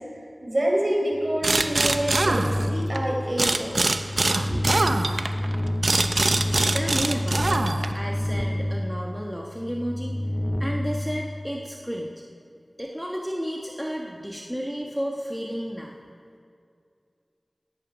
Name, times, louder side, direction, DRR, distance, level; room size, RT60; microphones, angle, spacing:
voice 1, 0.4-4.0 4.5-4.6, right 1 dB, 45° right, -2 dB, 4.1 m, -27 dB
sound 1, 1.3-11.9, left 1 dB, 10° left, 0.4 m, -29 dB
sound 2, 1.4-3.0 3.4-8.1, right 2 dB, 80° right, 0.6 m, -24 dB
voice 2, 6.7-10.2 10.6-12.1 12.8-15.9, equal, 5° right, -1 dB, 1.2 m, -32 dB
17.0 x 9.7 x 6.1 m, 2.3 s
wide cardioid pair, 55°, 0 cm